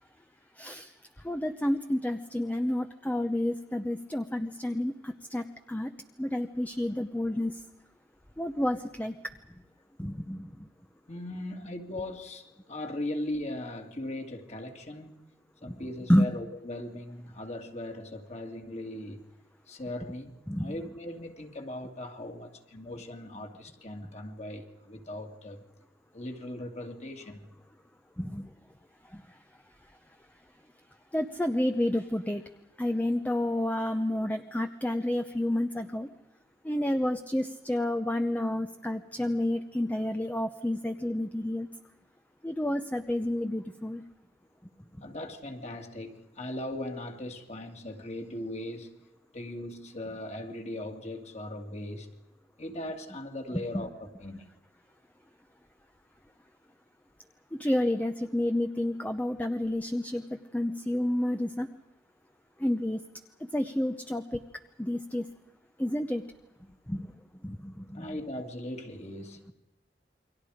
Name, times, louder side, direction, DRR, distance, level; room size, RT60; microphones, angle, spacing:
voice 1, 0.6-0.9 1.2-5.9 6.2-7.6 8.4-9.1 10.0-10.7 15.7-15.8 16.1-16.3 20.5-20.8 28.2-28.5 29.1-29.4 31.1-32.4 32.8-36.1 36.6-41.7 42.4-44.0 53.7-53.9 57.5-61.7 62.6-63.0 63.4-64.4 64.8-65.3 65.8-66.2 66.9-67.1 67.4-68.1, left 1 dB, 10° left, 7 dB, 0.8 m, -30 dB
voice 2, 11.1-15.2 15.6-19.2 19.7-20.3 20.6-25.6 26.1-27.5 45.0-49.0 49.3-52.1 52.6-54.4 67.9-69.5, left 1 dB, 40° left, 4 dB, 2.7 m, -39 dB
29.0 x 24.0 x 5.1 m, 0.98 s
head